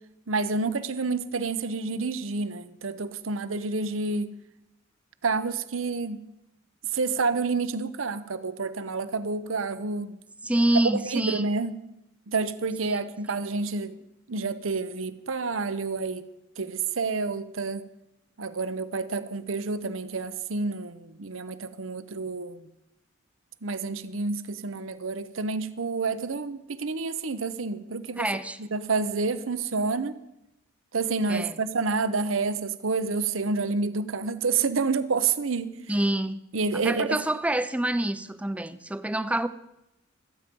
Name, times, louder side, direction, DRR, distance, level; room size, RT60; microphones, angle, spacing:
voice 1, 0.3-4.3 5.2-6.2 6.9-10.2 10.9-11.8 12.3-13.9 14.3-16.3 16.6-17.8 18.4-22.7 23.6-28.3 28.7-30.1 30.9-35.8 36.5-37.2, right 4 dB, 80° right, 0.9 m, -29 dB
voice 2, 10.4-11.4 12.9-13.0 28.2-28.6 31.3-31.6 35.9-36.4 36.7-39.5, right 1 dB, 5° right, 0.6 m, -26 dB
25.0 x 9.3 x 5.3 m
head